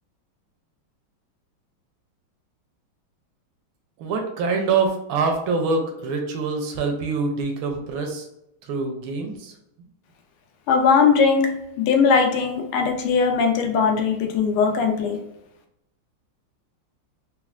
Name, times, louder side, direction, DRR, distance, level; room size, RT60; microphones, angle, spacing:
voice 1, 4.0-8.3 8.6-9.5, right 4 dB, 75° right, 4 dB, 1.3 m, -25 dB
voice 2, 10.7-11.5 11.8-15.2, left 5 dB, 85° left, 4 dB, 1.5 m, -19 dB
4.3 x 2.1 x 2.3 m, 0.83 s
omnidirectional pair, 2.3 m